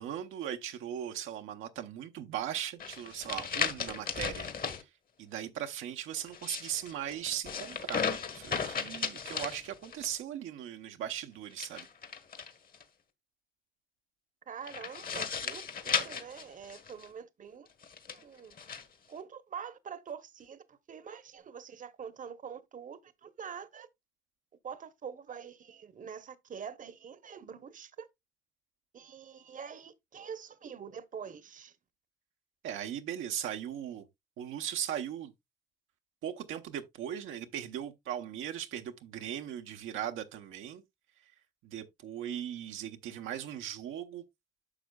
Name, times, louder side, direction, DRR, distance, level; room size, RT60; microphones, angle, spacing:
voice 1, 0.0-4.5 4.8-4.9 5.2-8.0 8.3-11.9 32.6-34.1 34.4-35.3 36.2-40.8 41.6-44.2, right 10 dB, 85° right, 0.9 m, -38 dB
sound 1, 2.8-4.8 6.2-10.1 11.5-12.8 14.7-17.1 17.8-18.8, left 6 dB, 45° left, 1.3 m, -36 dB
voice 2, 14.5-17.7 18.1-18.5 19.1-23.9 24.6-28.1 28.9-31.8, right 7 dB, 40° right, 0.9 m, -45 dB
9.9 x 6.3 x 2.3 m
cardioid pair, 90°, 20 cm